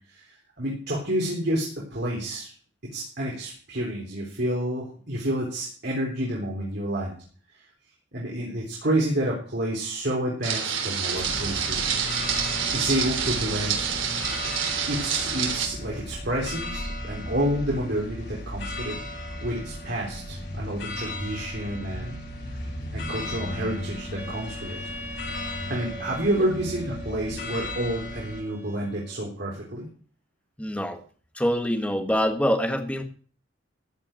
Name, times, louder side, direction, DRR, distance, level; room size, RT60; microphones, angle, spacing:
voice 1, 0.6-2.5 2.9-7.1 8.1-12.3 12.7-13.9 14.9-22.2 22.9-24.8 25.7-29.9, right 1 dB, 60° right, -3 dB, 3.7 m, -29 dB
sound 1, 10.4-15.7, right 7 dB, 80° right, 3.4 m, -28 dB
sound 2, 11.1-28.4, left 1 dB, 70° left, 7.8 m, -35 dB
Wind instrument woodwind instrument, 24.2-29.2, right 1 dB, 10° right, 2.8 m, -43 dB
voice 2, 30.6-31.0 31.3-33.0, equal, 5° left, 5 dB, 1.5 m, -25 dB
14.5 x 5.8 x 8.9 m, 0.44 s
head